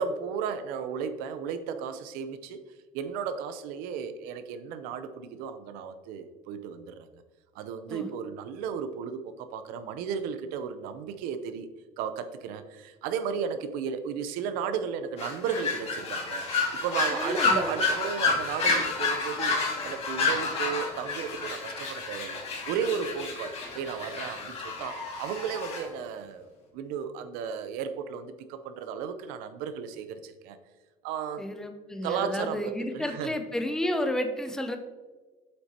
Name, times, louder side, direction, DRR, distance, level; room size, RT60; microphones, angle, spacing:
voice 1, 0.0-2.6 2.9-7.1 7.5-11.7 12.0-19.6 19.8-26.5 26.7-30.6 31.0-31.4 32.0-33.4, right 7 dB, 80° right, 10 dB, 0.7 m, -34 dB
sound 1, 15.2-25.8, left 4 dB, 45° left, 2.1 m, -30 dB
voice 2, 17.1-17.7 31.4-34.8, left 1 dB, 5° left, 6 dB, 0.6 m, -31 dB
7.8 x 5.7 x 2.8 m, 1.3 s
cardioid pair, 125°, 15 cm